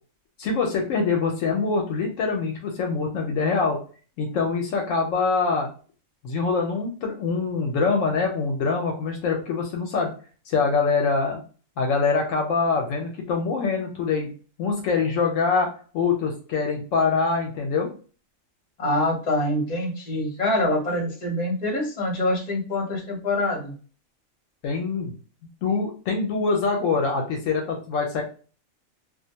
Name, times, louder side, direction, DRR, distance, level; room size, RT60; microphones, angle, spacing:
voice 1, 0.4-3.8 4.2-5.7 6.2-10.1 10.5-11.4 11.8-14.3 14.6-17.9 24.6-25.1 25.6-28.2, left 4 dB, 75° left, 2 dB, 0.9 m, -24 dB
voice 2, 18.8-23.7, left 1 dB, 35° left, -1 dB, 0.9 m, -25 dB
2.4 x 2.1 x 2.7 m, 0.38 s
omnidirectional pair, 1.4 m